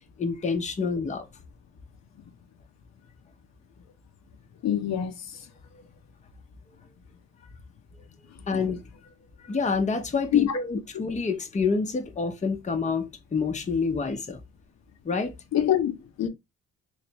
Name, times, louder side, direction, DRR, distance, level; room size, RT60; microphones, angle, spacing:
voice 1, 0.2-1.2 8.5-8.8 9.4-14.4 15.0-15.3, left 4 dB, 25° left, 0.8 m, -27 dB
voice 2, 4.6-5.5 10.3-10.6 15.5-16.3, left 10 dB, 60° left, 0.8 m, -25 dB
3.3 x 3.3 x 2.9 m
cardioid pair, 90°, 30 cm